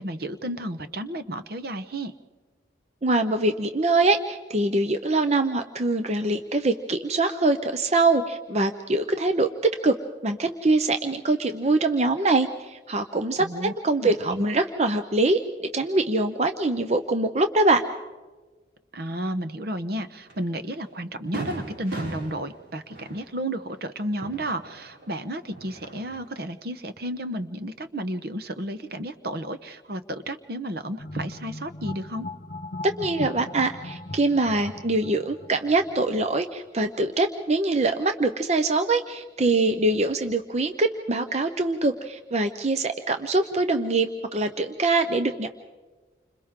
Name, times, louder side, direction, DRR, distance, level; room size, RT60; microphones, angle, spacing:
voice 1, 0.0-2.1 13.4-13.7 14.0-14.4 18.9-32.3, right 1 dB, 55° right, 10 dB, 1.0 m, -32 dB
voice 2, 3.0-10.0 10.2-17.8 32.8-45.5, right 2 dB, 35° right, 7 dB, 0.7 m, -23 dB
Fireworks, 20.3-20.4 20.8-20.9 21.3-25.1 25.4-26.3, right 2 dB, 80° right, 6.0 m, -37 dB
sound 1, 31.0-36.3, left 2 dB, 45° left, 0.7 m, -38 dB
29.5 x 26.5 x 3.7 m, 1.3 s
head